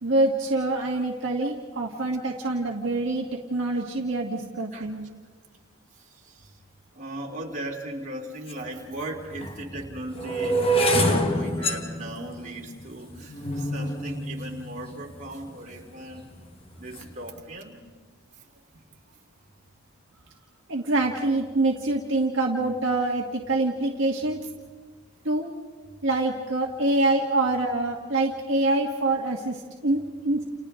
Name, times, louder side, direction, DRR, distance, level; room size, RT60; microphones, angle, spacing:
voice 1, 0.0-5.0 20.7-24.4 25.2-25.5 26.0-30.4, right 2 dB, 55° right, -1 dB, 1.6 m, -25 dB
voice 2, 5.9-6.6 6.9-16.3 16.8-17.8 18.3-18.4 18.7-18.9, right 1 dB, 35° right, -2 dB, 3.4 m, -38 dB
sound 1, 8.5-8.6 9.3-15.5 16.1-16.5 16.8-17.2, right 1 dB, 25° left, 1.4 m, -27 dB
30.0 x 29.5 x 3.8 m, 1.5 s
head